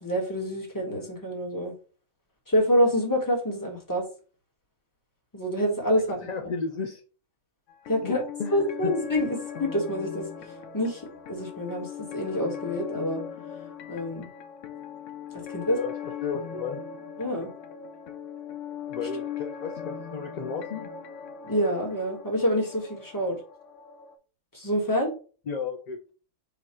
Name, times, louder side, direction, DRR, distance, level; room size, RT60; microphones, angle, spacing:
voice 1, 0.0-1.7 2.5-4.0 5.3-6.3 7.9-8.2 8.5-10.3 10.7-11.0 11.3-13.2 13.9-14.3 15.5-15.8 17.2-17.5 21.4-23.4 24.5-25.1, equal, 15° left, 0 dB, 1.2 m, -27 dB
voice 2, 6.2-7.0 8.0-8.6 8.8-8.9 15.7-16.0 16.2-16.8 18.9-20.9 25.5-26.0, left 5 dB, 55° left, 3 dB, 0.4 m, -33 dB
sound 1, 7.7-24.2, left 7 dB, 80° left, 1.0 m, -39 dB
5.1 x 2.4 x 4.3 m, 0.37 s
omnidirectional pair, 1.3 m